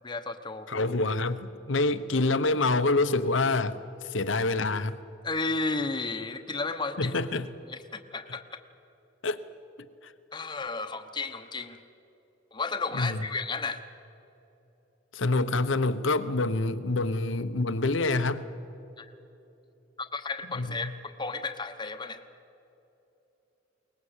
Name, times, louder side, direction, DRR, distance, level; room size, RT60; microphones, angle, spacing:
voice 1, 0.0-0.7 5.2-7.1 7.7-8.6 10.3-11.8 12.5-13.8 19.0-19.1 20.0-22.2, left 3 dB, 25° left, 7 dB, 1.1 m, -33 dB
voice 2, 0.7-5.0 7.0-7.5 9.2-9.4 10.0-10.1 12.9-13.2 15.1-18.5 20.5-20.9, left 2 dB, 75° left, 12 dB, 1.0 m, -27 dB
22.5 x 19.5 x 8.2 m, 3.0 s
head